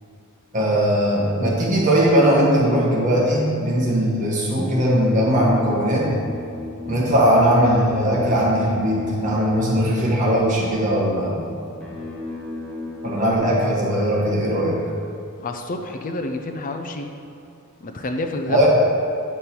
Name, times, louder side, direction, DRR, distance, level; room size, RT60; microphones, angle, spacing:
voice 1, 0.5-6.1 6.8-11.4 13.0-14.8 18.5-18.7, equal, 35° right, -4 dB, 1.5 m, -19 dB
sound 1, 5.2-13.4, left 3 dB, 5° left, 1.4 m, -35 dB
voice 2, 15.4-17.1 17.8-18.7, left 2 dB, 35° left, 5 dB, 0.5 m, -28 dB
8.3 x 5.3 x 4.5 m, 2.5 s
head